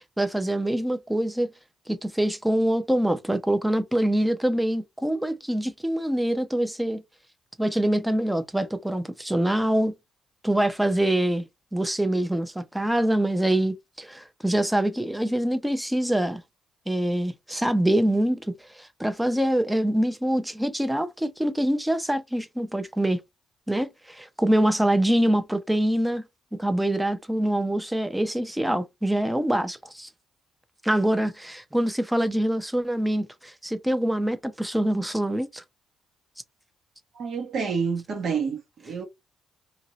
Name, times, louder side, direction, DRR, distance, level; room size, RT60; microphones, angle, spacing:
voice 1, 0.0-1.5 1.9-7.0 7.6-9.9 10.4-11.5 11.7-16.4 16.9-18.4 18.8-23.2 23.7-26.2 26.6-30.1 30.8-35.6, right 1 dB, 5° right, 0.6 m, -25 dB
voice 2, 37.1-39.0, right 5 dB, 60° right, 1.2 m, -28 dB
2.9 x 2.6 x 2.9 m
cardioid pair, 90°, 0 cm